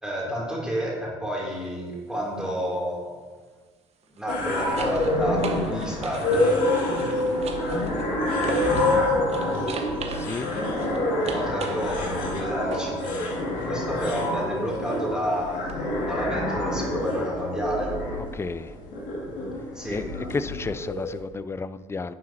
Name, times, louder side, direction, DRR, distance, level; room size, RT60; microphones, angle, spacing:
voice 1, 0.0-3.2 4.1-6.4 11.2-13.1 13.7-18.0 19.7-20.0, equal, 5° right, -4 dB, 3.2 m, -30 dB
sound 1, 1.5-1.7 4.0-9.0 9.3-13.0 15.7-15.8, right 4 dB, 40° right, 1.2 m, -38 dB
sound 2, 4.3-21.2, left 1 dB, 55° left, 2.6 m, -27 dB
voice 2, 10.1-10.5 18.3-18.7 19.9-22.1, left 4 dB, 15° left, 14 dB, 0.4 m, -32 dB
11.5 x 9.3 x 2.9 m, 1.4 s
hypercardioid pair, 60°, 16 cm